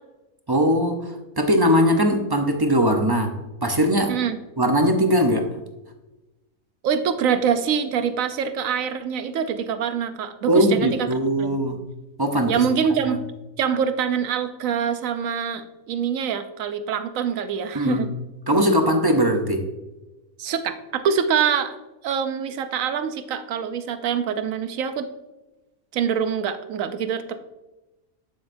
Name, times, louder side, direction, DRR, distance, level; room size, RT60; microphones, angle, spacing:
voice 1, 0.5-3.3 3.6-4.2 4.6-5.5 10.5-11.8 12.2-12.6 17.7-18.1 18.5-19.6, equal, 35° right, 4 dB, 0.3 m, -20 dB
voice 2, 6.8-11.1 11.4-11.5 12.5-13.2 13.6-18.1 20.4-21.7 22.0-25.1 25.9-27.4, right 7 dB, 70° right, 10 dB, 1.0 m, -24 dB
8.6 x 7.7 x 2.6 m, 1.0 s
omnidirectional pair, 1.6 m